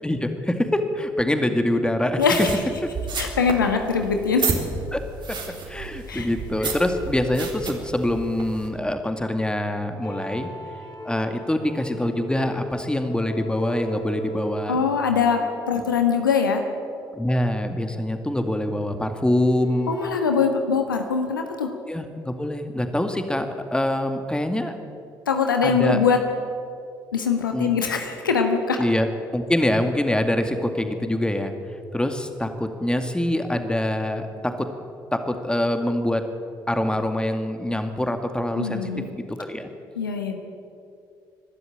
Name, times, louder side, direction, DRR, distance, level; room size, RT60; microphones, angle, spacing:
voice 1, 0.0-2.2 4.9-5.0 5.3-5.4 5.7-10.5 11.0-14.8 17.1-19.9 21.9-24.7 25.6-26.0 27.5-27.7 28.8-29.1 29.3-31.5 31.9-34.7 35.1-36.3 36.7-39.7, left 1 dB, 10° left, 7 dB, 2.3 m, -25 dB
voice 2, 2.2-2.5 3.2-4.4 6.1-6.3 6.6-6.7 14.7-16.6 19.9-21.7 25.3-26.2 27.1-28.8 38.6-39.1 40.0-40.4, left 5 dB, 85° left, 5 dB, 1.3 m, -22 dB
sound 1, 2.2-8.7, right 4 dB, 45° right, 3.7 m, -32 dB
sound 2, 10.0-17.7 18.8-20.1, equal, 55° left, 3.4 m, -39 dB
24.5 x 12.5 x 8.9 m, 2.5 s
figure-of-eight pair, 50°, 11 cm